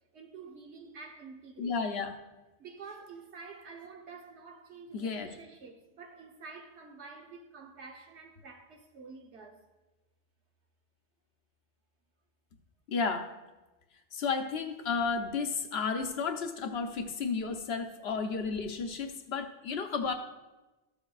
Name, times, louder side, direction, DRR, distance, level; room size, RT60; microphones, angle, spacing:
voice 1, 0.1-1.9 2.6-9.7, right 4 dB, 80° right, 1.3 m, -49 dB
voice 2, 1.6-2.1 4.9-5.3 12.9-13.3 14.1-20.1, left 5 dB, 70° left, 1.0 m, -32 dB
13.5 x 7.1 x 2.4 m
omnidirectional pair, 1.1 m